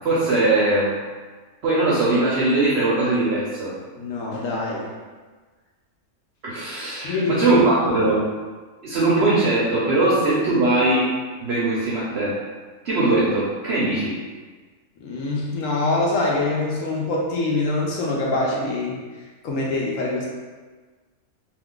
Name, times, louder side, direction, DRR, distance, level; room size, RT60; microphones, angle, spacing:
voice 1, 0.0-0.9 1.6-3.7 6.4-8.2 8.8-11.1 11.4-12.4 12.8-14.2, right 2 dB, 65° right, -7 dB, 0.6 m, -20 dB
voice 2, 4.0-4.9 7.0-7.6 15.0-19.0 19.4-20.3, left 2 dB, 70° left, -3 dB, 0.9 m, -24 dB
2.5 x 2.4 x 3.6 m, 1.4 s
omnidirectional pair, 1.6 m